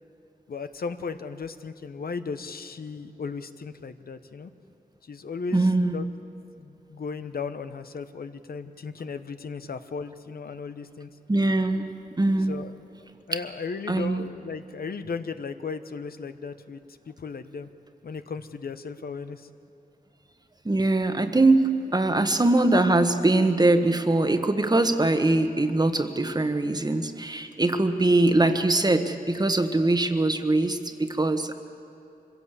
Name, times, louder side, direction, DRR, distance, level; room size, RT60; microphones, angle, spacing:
voice 1, 0.5-4.5 5.0-6.1 6.6-11.1 12.5-12.7 13.3-16.8 17.1-17.7 18.0-19.5, left 5 dB, 75° left, 10 dB, 0.9 m, -36 dB
voice 2, 5.5-6.0 11.3-11.9 12.2-12.6 13.9-14.3 20.6-31.5, right 2 dB, 25° right, 8 dB, 1.3 m, -22 dB
24.5 x 16.5 x 8.3 m, 2.8 s
wide cardioid pair, 90°, 16 cm